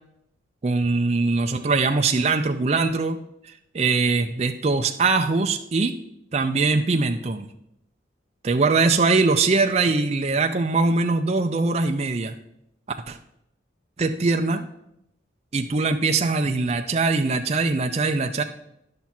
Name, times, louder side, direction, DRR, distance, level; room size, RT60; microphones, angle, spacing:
voice 1, 0.6-3.2 3.4-5.9 6.3-7.5 8.4-12.3 13.1-13.2 14.0-14.6 15.5-18.4, right 3 dB, 35° right, 5 dB, 0.4 m, -22 dB
10.5 x 5.8 x 4.3 m, 0.79 s
head